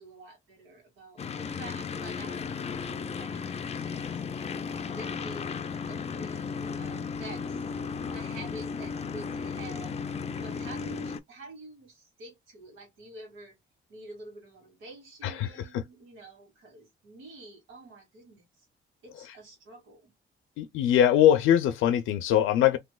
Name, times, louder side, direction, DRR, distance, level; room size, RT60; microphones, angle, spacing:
voice 1, 0.0-4.4 4.9-5.5 5.9-7.6 8.1-9.9 10.4-13.6 13.9-18.7 19.0-20.1, right 2 dB, 85° right, 2.0 m, -48 dB
sound 1, 1.2-11.2, left 5 dB, 30° left, 0.4 m, -35 dB
voice 2, 15.2-15.8 20.6-22.8, left 10 dB, 90° left, 0.5 m, -22 dB
3.2 x 3.0 x 2.2 m
cardioid pair, 90°, 20 cm